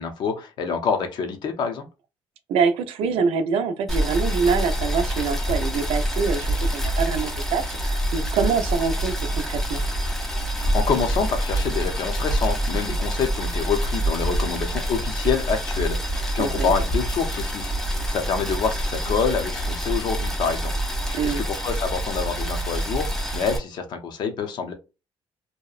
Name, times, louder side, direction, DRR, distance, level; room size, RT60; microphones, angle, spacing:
voice 1, 0.0-1.8 10.6-20.7 21.1-24.7, left 6 dB, 50° left, 0.6 m, -27 dB
voice 2, 2.5-9.8 16.4-16.7 21.1-21.4, right 5 dB, 80° right, 0.5 m, -25 dB
Boiling, 3.9-23.6, right 1 dB, 5° left, 0.4 m, -26 dB
2.7 x 2.1 x 2.4 m
cardioid pair, 175°, 10 cm